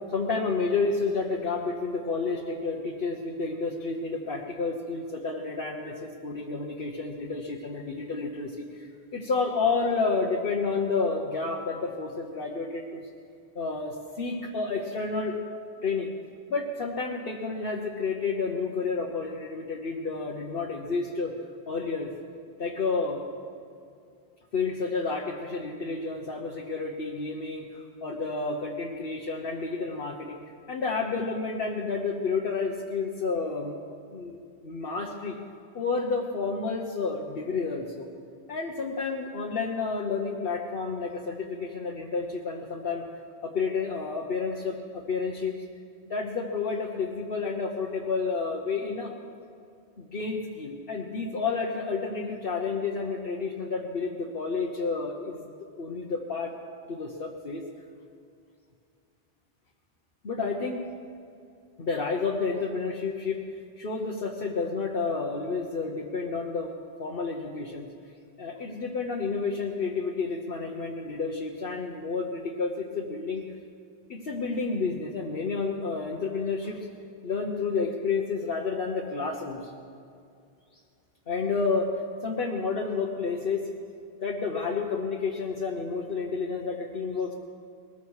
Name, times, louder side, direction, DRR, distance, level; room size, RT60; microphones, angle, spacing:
voice 1, 0.1-13.0 13.5-15.4 15.8-16.1 16.5-21.3 21.7-22.1 22.6-23.2 24.5-30.3 30.7-33.8 34.1-35.4 35.7-38.1 38.5-43.0 43.4-45.5 46.1-49.1 50.0-55.5 55.8-56.5 56.9-57.6 60.2-60.8 61.8-63.4 63.8-66.7 67.0-67.9 68.4-73.4 74.1-76.8 77.2-79.7 81.3-81.9 82.2-83.7 84.2-87.3, left 4 dB, 65° left, 0 dB, 1.3 m, -30 dB
20.5 x 14.0 x 4.8 m, 2.4 s
omnidirectional pair, 1.0 m